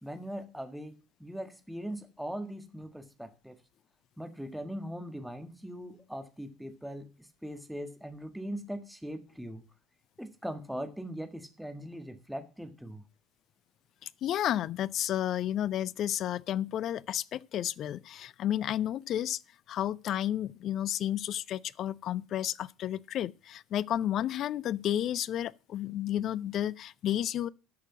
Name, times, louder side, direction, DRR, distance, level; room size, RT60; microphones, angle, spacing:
voice 1, 0.0-3.6 4.2-9.6 10.2-13.0, equal, ahead, 1.6 m, -40 dB
voice 2, 14.0-19.4 19.7-27.5, left 11 dB, 45° left, 0.5 m, -32 dB
14.0 x 6.8 x 6.1 m
figure-of-eight pair, 65°, 0 cm